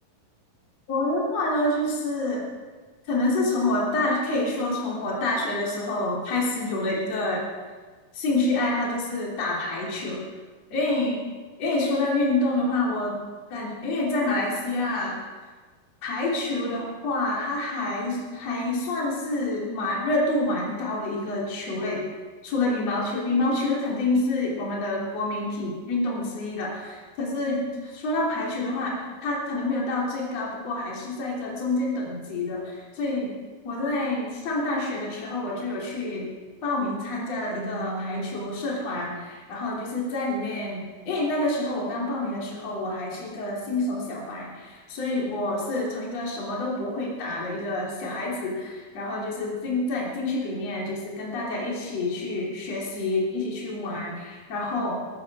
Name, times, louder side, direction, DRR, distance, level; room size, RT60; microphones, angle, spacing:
voice 1, 0.9-2.5 3.1-7.4 8.1-10.2 10.7-11.2 11.6-13.2 13.5-15.2 16.0-22.1 22.4-33.3 33.6-36.3 36.6-55.1, left 2 dB, 40° left, -4 dB, 4.1 m, -27 dB
18.0 x 15.0 x 4.9 m, 1.4 s
omnidirectional pair, 4.6 m